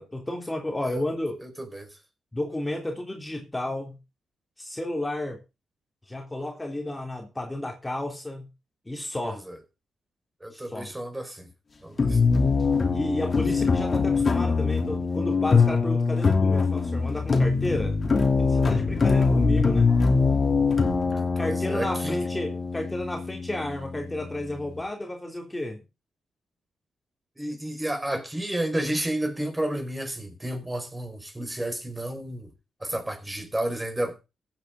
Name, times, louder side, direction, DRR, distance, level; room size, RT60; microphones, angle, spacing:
voice 1, 0.0-1.4 2.3-4.0 4.6-5.4 6.1-8.5 8.9-9.4 10.5-10.9 12.9-18.0 18.4-19.9 21.4-25.8, left 1 dB, 15° left, 3.4 m, -32 dB
voice 2, 1.4-2.0 9.2-9.6 10.4-11.5 11.8-12.3 13.4-13.5 21.1-22.2 27.4-32.5 32.8-34.1, right 1 dB, 15° right, 5.1 m, -31 dB
sound 1, 12.0-24.8, left 4 dB, 45° left, 2.8 m, -23 dB
15.5 x 9.2 x 3.8 m
supercardioid pair, 50°, 0 cm